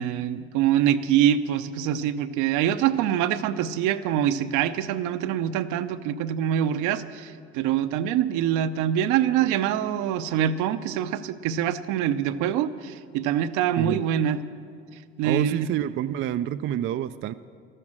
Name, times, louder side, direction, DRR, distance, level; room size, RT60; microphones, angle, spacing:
voice 1, 0.0-14.4 15.2-15.7, right 10 dB, 65° right, 11 dB, 0.7 m, -24 dB
voice 2, 15.2-17.3, right 11 dB, 40° right, 11 dB, 0.4 m, -28 dB
13.0 x 11.0 x 7.3 m, 2.3 s
supercardioid pair, 85°, 32 cm